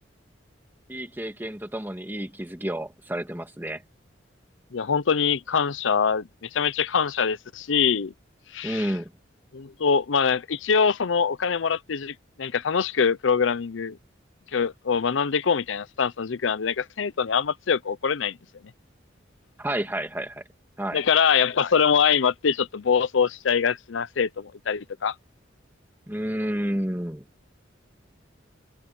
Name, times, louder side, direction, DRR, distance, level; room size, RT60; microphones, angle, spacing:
voice 1, 0.9-3.8 8.6-9.1 19.6-20.4 20.8-21.0 26.1-27.2, right 1 dB, 10° right, 1.8 m, -30 dB
voice 2, 4.7-8.1 8.5-8.9 9.5-14.0 14.5-18.4 20.9-25.1, left 6 dB, 75° left, 0.6 m, -24 dB
head